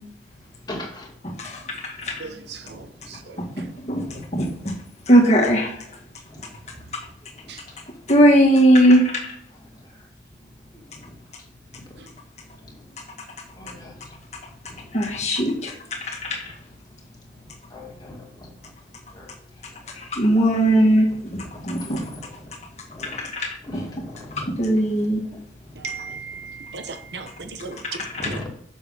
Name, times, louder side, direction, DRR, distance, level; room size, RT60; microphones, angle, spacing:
voice 1, 0.7-1.1 2.7-2.8 4.1-4.2 6.3-6.4 13.6-13.9 15.1-15.2 17.7-18.5 19.1-19.3 20.8-21.2 22.0-22.3 22.9-23.2 23.7-24.5 27.4-27.5 28.2-28.5, left 1 dB, 25° left, -1 dB, 2.2 m, -38 dB
voice 2, 2.2-2.8 25.8-27.8 28.2-28.4, right 4 dB, 65° right, 6 dB, 1.0 m, -35 dB
voice 3, 3.6-4.0 4.3-4.7 5.1-5.7 8.1-9.1 14.9-15.7 16.0-16.3 20.1-21.1 21.6-22.0 23.3-23.8 24.5-25.2 28.0-28.3, right 1 dB, 40° left, -1 dB, 2.0 m, -18 dB
7.0 x 7.0 x 5.5 m, 0.70 s
head